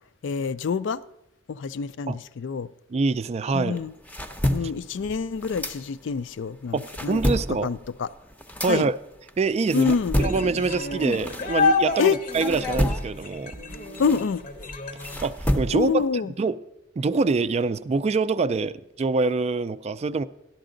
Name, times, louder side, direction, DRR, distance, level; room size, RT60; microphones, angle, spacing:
voice 1, 0.2-1.0 1.5-2.7 3.5-3.9 4.5-7.2 7.6-8.1 8.7-8.9 9.7-10.2 12.0-12.2 14.0-14.4 15.7-16.3, left 5 dB, 70° left, 0.4 m, -26 dB
voice 2, 2.9-3.8 6.7-7.7 8.6-8.9 9.4-9.9 10.2-13.6 15.2-16.0 16.4-16.6 17.0-20.2, right 4 dB, 35° right, 0.3 m, -25 dB
sound 1, 3.7-6.3 6.6-11.9 12.3-16.1, equal, 10° left, 0.6 m, -30 dB
sound 2, 10.2-15.2, left 3 dB, 45° left, 0.8 m, -28 dB
13.5 x 11.5 x 3.8 m
head